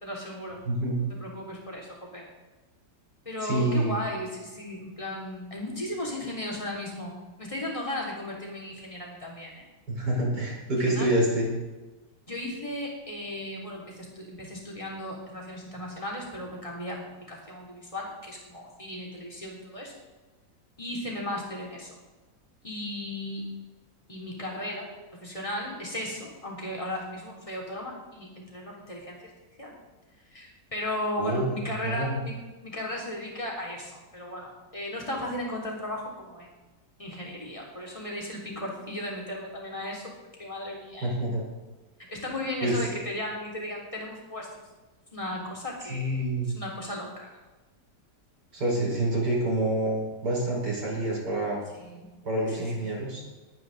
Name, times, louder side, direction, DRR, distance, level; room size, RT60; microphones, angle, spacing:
voice 1, 0.0-0.6 1.2-2.3 3.2-9.7 10.9-11.1 12.2-19.9 20.8-21.9 22.6-23.5 24.1-29.2 29.6-29.8 30.3-32.4 32.6-36.5 37.0-41.1 42.1-44.5 45.1-47.4 51.8-52.1 52.5-52.7, left 1 dB, 15° left, -2 dB, 3.4 m, -36 dB
voice 2, 0.6-1.0 3.4-4.0 9.9-11.5 31.2-31.5 31.8-32.2 41.0-41.4 42.6-43.0 45.9-46.5 48.5-51.6 52.2-53.2, right 1 dB, 65° right, -4 dB, 5.6 m, -27 dB
20.5 x 9.4 x 4.1 m, 1.2 s
omnidirectional pair, 1.9 m